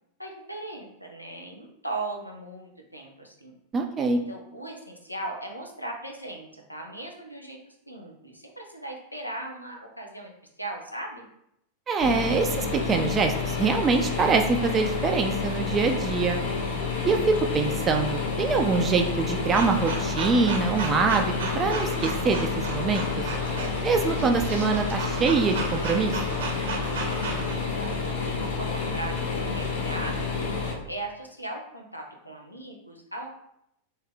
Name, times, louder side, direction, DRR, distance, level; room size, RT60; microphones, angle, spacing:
voice 1, 0.2-3.5 4.1-10.3 10.6-11.3 27.0-30.5 30.9-33.3, right 2 dB, 90° left, 1 dB, 0.6 m, -38 dB
voice 2, 3.7-4.2 11.9-16.4 17.0-23.3 23.8-26.2, right 4 dB, 25° right, 4 dB, 0.4 m, -24 dB
sound 1, 12.0-30.7, left 4 dB, 60° left, 0.8 m, -29 dB
sound 2, 19.5-27.5, right 3 dB, 60° right, 0.7 m, -35 dB
3.1 x 2.8 x 3.5 m, 0.79 s
figure-of-eight pair, 90°, 0 cm